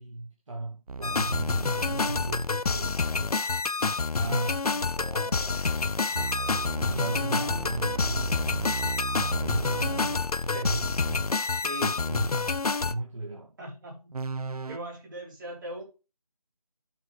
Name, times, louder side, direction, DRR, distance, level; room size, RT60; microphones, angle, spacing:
voice 1, 0.0-3.8 4.2-6.2 6.9-8.3 9.2-12.5 12.9-13.5, right 2 dB, 55° right, 1.9 m, -36 dB
sound 1, 0.9-2.3 6.1-10.3 14.1-14.8, right 5 dB, 80° right, 0.6 m, -35 dB
sound 2, 1.0-12.9, left 4 dB, 80° left, 0.7 m, -28 dB
voice 2, 13.6-14.1 14.7-15.8, right 1 dB, 35° right, 3.7 m, -40 dB
10.0 x 6.8 x 3.2 m
figure-of-eight pair, 165°, 19 cm